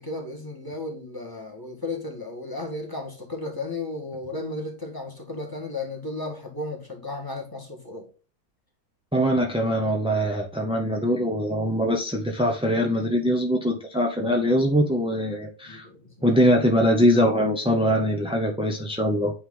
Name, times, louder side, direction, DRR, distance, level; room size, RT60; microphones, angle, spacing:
voice 1, 0.0-8.1 15.6-16.3, left 2 dB, 15° left, 1.5 m, -34 dB
voice 2, 9.1-15.9 16.2-19.3, equal, 10° right, 0.4 m, -22 dB
8.7 x 3.2 x 3.8 m
omnidirectional pair, 1.7 m